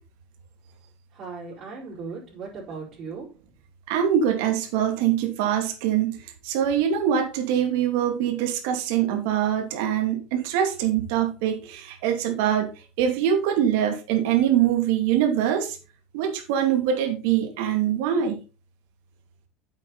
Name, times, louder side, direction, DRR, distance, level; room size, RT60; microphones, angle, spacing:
voice 1, 1.1-3.3, right 4 dB, 40° right, -7 dB, 4.8 m, -37 dB
voice 2, 3.9-6.2 6.4-12.7 13.0-15.8 16.1-18.4, right 9 dB, 75° right, 5 dB, 2.6 m, -23 dB
9.3 x 8.2 x 4.1 m, 0.31 s
cardioid pair, 155°, 0 cm